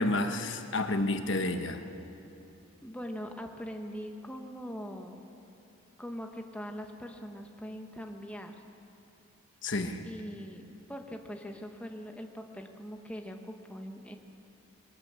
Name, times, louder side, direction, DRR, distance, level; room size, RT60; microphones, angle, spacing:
voice 1, 0.0-1.8 9.6-10.0, left 2 dB, 60° left, 6 dB, 1.3 m, -30 dB
voice 2, 2.8-5.2 6.0-8.5 10.0-14.2, equal, 5° left, 3 dB, 1.2 m, -42 dB
22.0 x 19.0 x 7.0 m, 2.8 s
head